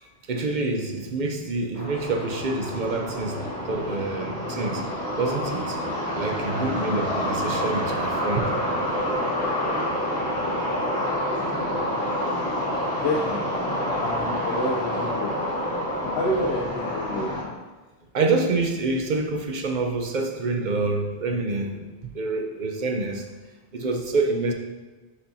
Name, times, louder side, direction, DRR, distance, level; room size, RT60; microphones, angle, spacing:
voice 1, 0.3-4.8 5.2-5.8 6.2-8.5 18.1-23.3 23.7-24.5, right 3 dB, 50° right, 4 dB, 0.7 m, -27 dB
sound 1, 1.7-17.4, equal, 15° left, 1.8 m, -28 dB
voice 2, 13.0-13.6 14.0-15.4 16.1-17.6, left 1 dB, 75° left, 0 dB, 0.9 m, -29 dB
10.0 x 4.4 x 2.7 m, 1.2 s
omnidirectional pair, 1.1 m